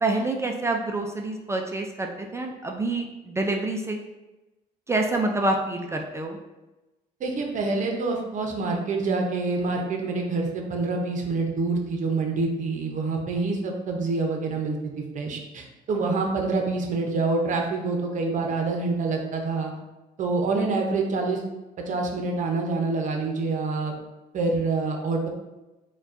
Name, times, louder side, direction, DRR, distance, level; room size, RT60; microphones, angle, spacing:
voice 1, 0.0-4.0 4.9-6.4, right 2 dB, 15° right, 2 dB, 0.3 m, -27 dB
voice 2, 7.2-14.8 15.1-19.7 20.2-21.4 21.9-23.9 24.3-25.3, right 3 dB, 50° right, 1 dB, 0.6 m, -26 dB
4.5 x 2.3 x 2.5 m, 1.1 s
cardioid pair, 110°, 17 cm